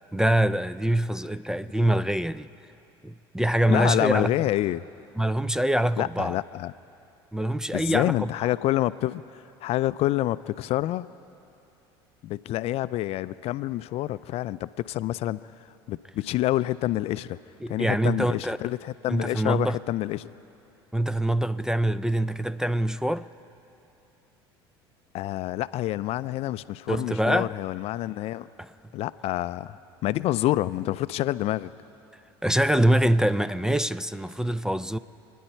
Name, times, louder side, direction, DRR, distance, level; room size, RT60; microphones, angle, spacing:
voice 1, 0.1-2.5 3.0-4.3 5.2-6.4 7.3-8.3 17.6-18.6 19.1-19.8 20.9-23.3 26.9-27.5 28.6-28.7 32.4-35.0, right 1 dB, 5° right, 0.4 m, -24 dB
voice 2, 3.7-4.9 6.0-6.7 7.7-11.1 12.2-15.5 15.9-17.4 17.7-20.3 25.1-28.5 28.9-31.7, left 15 dB, 55° left, 0.4 m, -27 dB
29.0 x 10.5 x 4.5 m
hypercardioid pair, 80°, 13 cm